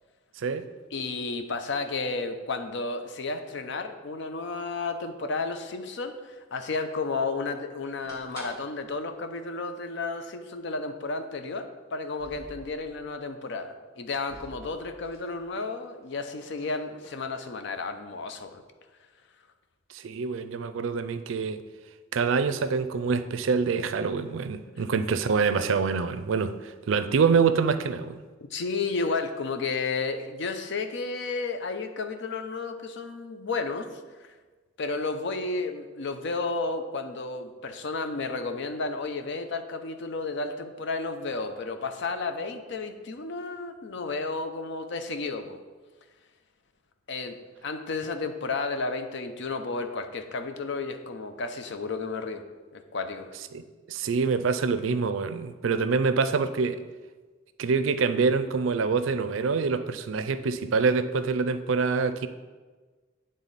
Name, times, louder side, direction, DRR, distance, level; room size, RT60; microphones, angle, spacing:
voice 1, 0.9-18.6 28.5-33.9 34.8-45.6 47.1-52.4 52.7-53.3, left 3 dB, 65° left, 8 dB, 0.6 m, -32 dB
sound 1, 8.0-8.9 9.3-9.4 9.6-9.7 10.5-10.7 12.0-13.1 14.3-15.7 16.0-17.2, equal, 15° left, 1.5 m, -48 dB
voice 2, 19.9-21.6 22.1-28.2 53.5-56.8 57.6-62.3, right 5 dB, 80° right, 11 dB, 0.4 m, -26 dB
9.1 x 3.7 x 4.0 m, 1.3 s
head